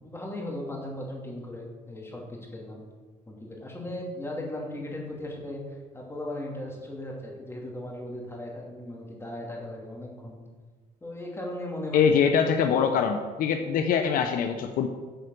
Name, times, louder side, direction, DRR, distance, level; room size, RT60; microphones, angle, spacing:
voice 1, 0.0-2.8 3.3-10.4 11.0-12.8, left 1 dB, 15° left, -1 dB, 2.6 m, -37 dB
voice 2, 11.9-14.9, left 7 dB, 70° left, 6 dB, 0.7 m, -23 dB
9.1 x 5.0 x 6.6 m, 1.4 s
cardioid pair, 100°, 15 cm